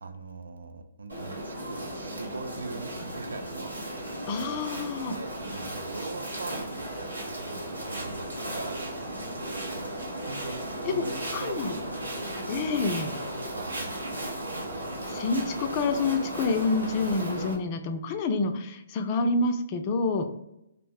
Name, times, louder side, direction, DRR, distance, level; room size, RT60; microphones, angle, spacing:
voice 1, 0.0-3.8 5.1-8.9 10.3-11.9 13.3-14.4, right 3 dB, 70° right, 7 dB, 0.4 m, -41 dB
sound 1, 1.1-17.5, right 1 dB, 90° right, 1.0 m, -35 dB
voice 2, 4.3-5.1 10.8-11.0 11.3-11.8 12.5-13.1 15.1-20.3, left 3 dB, 35° left, 6 dB, 0.4 m, -28 dB
2.4 x 2.0 x 3.5 m, 0.83 s
figure-of-eight pair, 135°, 0 cm